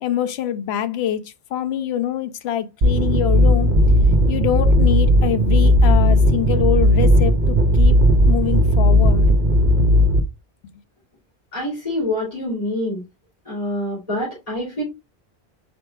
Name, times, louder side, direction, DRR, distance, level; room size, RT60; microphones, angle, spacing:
voice 1, 0.0-3.7 4.3-8.0 8.3-9.5, left 10 dB, 80° left, 0.8 m, -25 dB
sound 1, 2.8-10.2, equal, 50° right, 0.8 m, -15 dB
voice 2, 11.5-13.0 13.4-14.8, left 1 dB, 35° left, 3.1 m, -26 dB
5.0 x 4.6 x 2.3 m
omnidirectional pair, 1.1 m